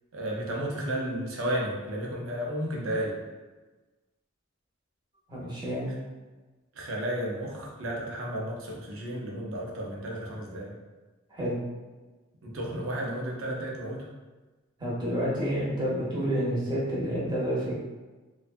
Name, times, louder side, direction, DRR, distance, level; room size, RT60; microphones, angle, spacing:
voice 1, 0.1-3.2 6.7-10.7 12.4-14.1, right 1 dB, 70° right, -2 dB, 0.6 m, -33 dB
voice 2, 5.3-5.9 11.3-11.5 12.7-12.8 14.8-17.7, equal, 20° right, -7 dB, 0.8 m, -29 dB
2.5 x 2.3 x 2.5 m, 1.2 s
head